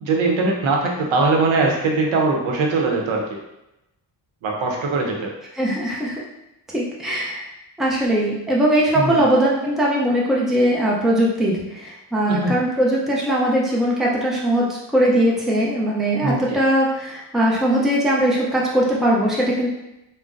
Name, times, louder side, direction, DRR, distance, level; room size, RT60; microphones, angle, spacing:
voice 1, 0.0-3.4 4.4-5.3 8.9-9.2 12.3-12.6 16.2-16.4, right 3 dB, 90° right, 0 dB, 0.7 m, -21 dB
voice 2, 5.6-6.2 6.7-7.4 7.8-14.7 14.9-19.7, right 1 dB, ahead, -4 dB, 0.4 m, -20 dB
3.8 x 2.1 x 2.5 m, 0.91 s
cardioid pair, 130°, 46 cm